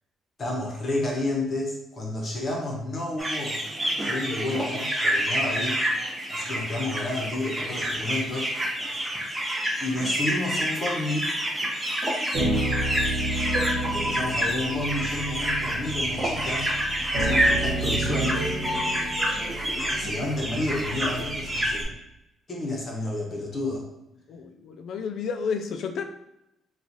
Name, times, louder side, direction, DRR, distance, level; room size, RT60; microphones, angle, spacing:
voice 1, 0.4-3.6 4.1-5.8 6.3-8.5 8.9-9.0 9.8-11.3 13.9-16.7 17.1-18.5 19.9-21.9 22.5-23.8, left 2 dB, 30° left, -1 dB, 0.9 m, -30 dB
sound 1, 3.2-21.8, equal, 10° right, 0.6 m, -28 dB
sound 2, 12.3-21.9, right 1 dB, 55° right, 1.2 m, -31 dB
voice 2, 24.3-26.0, left 6 dB, 55° left, 7 dB, 0.3 m, -31 dB
3.0 x 2.4 x 4.0 m, 0.89 s
cardioid pair, 175°, 0 cm